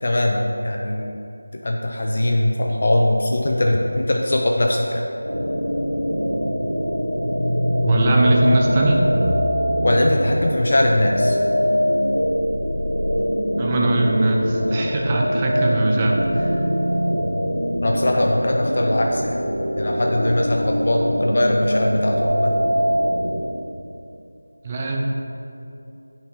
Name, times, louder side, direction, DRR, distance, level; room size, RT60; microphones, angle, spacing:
voice 1, 0.0-1.2 1.6-5.0 9.8-11.4 17.8-19.4 19.8-22.5, left 1 dB, 45° left, 1 dB, 0.6 m, -21 dB
sound 1, 5.2-23.4, equal, 90° left, 1.7 m, -23 dB
voice 2, 7.8-9.0 13.6-16.6 24.6-25.0, right 2 dB, 20° right, -1 dB, 0.5 m, -20 dB
8.8 x 5.3 x 4.5 m, 2.8 s
figure-of-eight pair, 165°, 0 cm